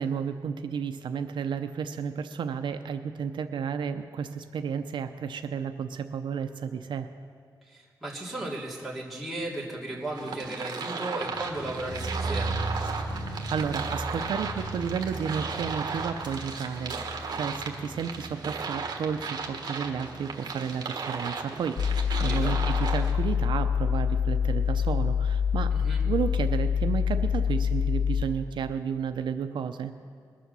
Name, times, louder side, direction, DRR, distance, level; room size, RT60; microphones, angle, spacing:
voice 1, 0.0-7.1 13.0-13.1 13.5-25.7 26.1-29.9, right 7 dB, 80° right, 8 dB, 0.6 m, -32 dB
voice 2, 7.7-12.5 22.2-22.6 25.7-26.0, right 2 dB, ahead, -4 dB, 2.6 m, -35 dB
sound 1, 10.1-23.1, right 4 dB, 55° right, 1.4 m, -35 dB
sound 2, 11.2-22.2 22.4-22.5, right 2 dB, 50° left, 4.9 m, -37 dB
sound 3, 21.8-28.3, left 7 dB, 65° left, 0.6 m, -25 dB
21.5 x 7.6 x 6.8 m, 2.2 s
wide cardioid pair, 160°, 8 cm